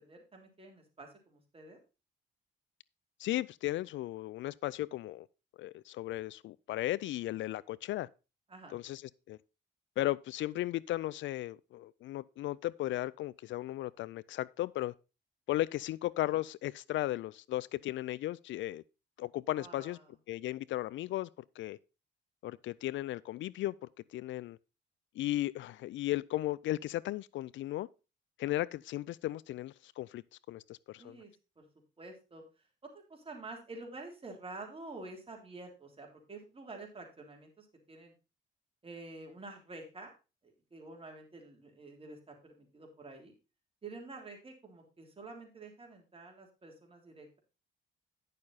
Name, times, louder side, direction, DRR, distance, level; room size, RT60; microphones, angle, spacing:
voice 1, 0.0-1.8 8.5-8.8 19.6-20.0 31.0-31.3 31.6-31.7 32.0-32.4 32.8-38.1 38.8-40.1 40.4-43.3 43.8-47.4, right 3 dB, 30° right, 3.3 m, -49 dB
voice 2, 3.2-5.3 5.6-8.1 8.7-9.0 9.3-9.4 10.0-14.9 15.5-18.8 19.2-20.0 20.3-21.3 21.6-21.8 22.4-23.7 24.1-24.6 25.2-27.9 28.4-30.2 30.5-31.2, left 15 dB, 75° left, 0.4 m, -35 dB
10.0 x 6.7 x 4.0 m
cardioid pair, 90°, 20 cm